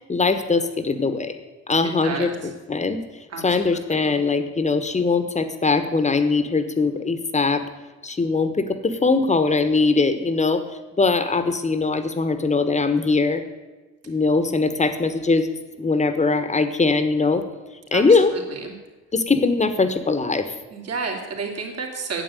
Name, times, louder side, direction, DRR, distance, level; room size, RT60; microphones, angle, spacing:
voice 1, 0.1-1.4 1.7-2.3 2.7-3.0 3.4-7.6 8.0-10.6 11.0-13.4 14.1-15.5 15.8-17.4 17.9-18.3 19.1-20.5, left 3 dB, 25° left, 10 dB, 1.3 m, -21 dB
voice 2, 2.0-2.3 3.3-3.6 3.9-4.1 17.9-18.0 18.3-18.7 20.7-22.2, right 4 dB, 55° right, 1 dB, 2.8 m, -31 dB
9.2 x 7.5 x 9.1 m, 1.2 s
cardioid pair, 90°, 30 cm